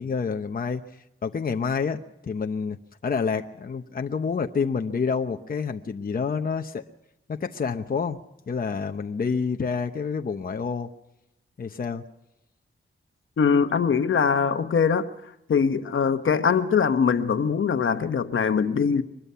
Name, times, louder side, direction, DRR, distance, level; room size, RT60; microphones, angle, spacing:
voice 1, 0.0-6.8 7.3-8.2 8.5-10.9 11.6-12.0, left 5 dB, 45° left, 0.9 m, -28 dB
voice 2, 13.4-15.1 15.5-19.0, left 6 dB, 70° left, 1.2 m, -22 dB
23.5 x 21.0 x 5.7 m
wide cardioid pair, 150°, 21 cm